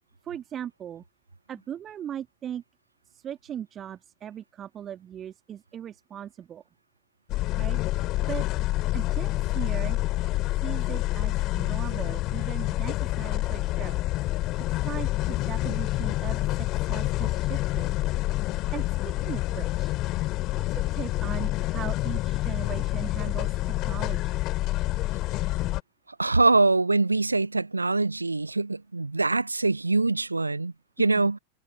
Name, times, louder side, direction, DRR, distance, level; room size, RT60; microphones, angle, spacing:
voice 1, 0.2-1.0 1.5-2.6 3.1-6.6 7.6-8.5 8.9-10.0 10.6-14.0 14.7-17.9 18.7-20.0 20.6-24.4 31.0-31.3, right 10 dB, 25° right, 2.3 m, -39 dB
sound 1, 7.3-25.8, left 17 dB, 35° left, 3.6 m, -28 dB
voice 2, 26.2-30.7 31.0-31.4, right 3 dB, 80° right, 0.7 m, -23 dB
figure-of-eight pair, 90°, 0 cm